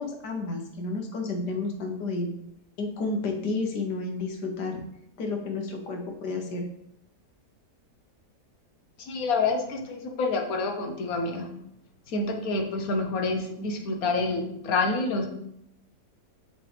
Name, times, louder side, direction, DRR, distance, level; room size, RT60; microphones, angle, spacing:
voice 1, 0.0-2.3 2.8-4.8 5.2-6.7, left 3 dB, 80° left, 3 dB, 1.6 m, -31 dB
voice 2, 9.0-11.5 12.1-15.3, left 3 dB, 60° left, 3 dB, 1.2 m, -28 dB
5.9 x 3.2 x 4.9 m, 0.76 s
omnidirectional pair, 1.8 m